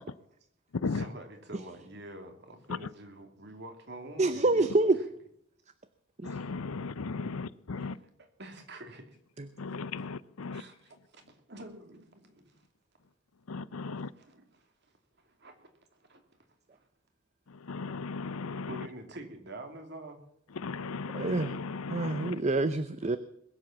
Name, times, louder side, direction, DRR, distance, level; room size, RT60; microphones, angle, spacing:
voice 1, 0.8-5.0 7.7-9.2 10.5-12.7 13.9-14.9 15.2-16.2 16.7-16.9 18.7-20.2, right 1 dB, 50° right, 2.5 m, -47 dB
voice 2, 4.2-5.0 6.2-6.4 9.4-9.5 21.1-21.6 21.9-23.2, right 2 dB, 30° right, 0.6 m, -27 dB
voice 3, 6.2-7.9 9.6-10.6 13.5-14.1 17.7-18.7 20.6-22.4, left 4 dB, 80° left, 0.6 m, -36 dB
21.5 x 7.8 x 7.2 m
head